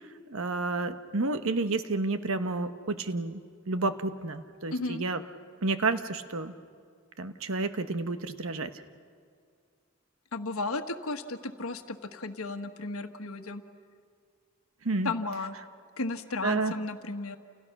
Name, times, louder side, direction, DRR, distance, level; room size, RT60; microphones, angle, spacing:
voice 1, 0.3-3.4 3.7-5.2 5.6-6.5 7.2-8.7 14.8-15.1 16.4-16.7, right 3 dB, 65° right, 9 dB, 1.1 m, -30 dB
voice 2, 4.7-5.0 10.3-13.6 15.0-15.6 16.0-17.4, left 3 dB, 75° left, 7 dB, 1.4 m, -34 dB
29.5 x 29.0 x 6.0 m, 2.1 s
head